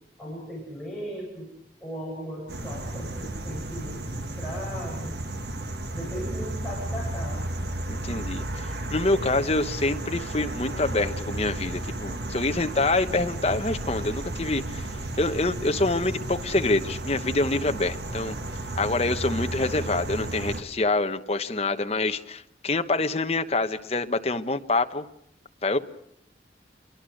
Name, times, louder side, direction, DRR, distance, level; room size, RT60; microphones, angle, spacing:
voice 1, 0.2-1.5 1.8-5.2 5.9-7.5, equal, ahead, -5 dB, 7.9 m, -37 dB
sound 1, 2.5-20.6, right 1 dB, 70° right, 1.7 m, -33 dB
voice 2, 7.9-14.9 15.2-18.3 18.8-25.0 25.6-25.8, left 2 dB, 35° left, 7 dB, 1.1 m, -26 dB
26.5 x 23.5 x 6.5 m, 0.74 s
head